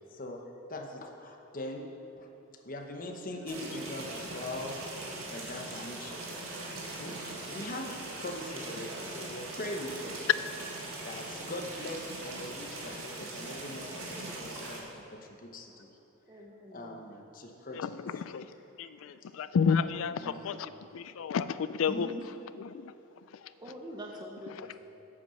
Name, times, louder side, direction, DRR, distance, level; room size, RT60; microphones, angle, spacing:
voice 1, 0.1-0.4 0.7-1.9 2.2-2.3 2.6-4.8 5.3-6.2 7.0-10.3 11.0-15.9 16.7-17.9 20.2-20.6 21.8-22.2 24.7-24.8, left 1 dB, 40° left, 3 dB, 0.9 m, -41 dB
sound 1, 3.5-14.8, right 2 dB, 75° right, 1.7 m, -41 dB
voice 2, 16.3-17.0 23.6-24.8, equal, 20° right, 0 dB, 0.7 m, -45 dB
voice 3, 17.7-22.9 23.3-23.5 24.5-24.8, left 6 dB, 65° left, 14 dB, 0.3 m, -32 dB
8.4 x 7.6 x 5.7 m, 2.9 s
head